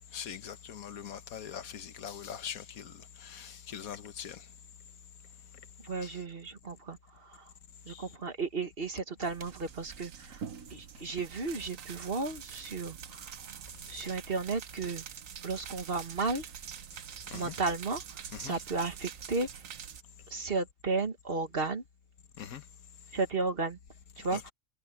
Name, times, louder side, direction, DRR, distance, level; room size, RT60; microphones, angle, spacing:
voice 1, 0.1-2.9 3.2-4.4 6.0-6.1 7.9-8.0 17.3-17.5 18.3-18.6 22.4-22.6 24.3-24.5, left 8 dB, 70° left, 1.5 m, -42 dB
voice 2, 5.8-7.4 7.9-10.4 10.7-13.4 13.9-15.0 15.4-16.4 17.3-19.6 20.3-21.8 23.1-23.8 24.2-24.4, right 3 dB, 40° right, 1.7 m, -34 dB
sound 1, 9.2-20.0, right 7 dB, 65° right, 1.4 m, -45 dB
omnidirectional pair, 1.5 m